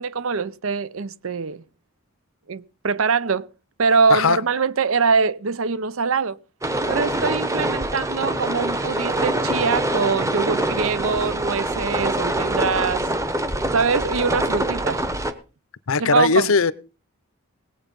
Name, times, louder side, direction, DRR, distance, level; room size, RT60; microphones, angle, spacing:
voice 1, 0.0-1.6 2.5-3.5 3.8-6.4 6.9-13.1 13.7-15.0 16.0-16.5, right 5 dB, 70° right, 0.6 m, -23 dB
sound 1, 6.6-15.3, right 1 dB, 15° right, 1.0 m, -24 dB
voice 2, 15.9-16.7, left 5 dB, 70° left, 0.7 m, -18 dB
18.0 x 8.0 x 5.3 m
head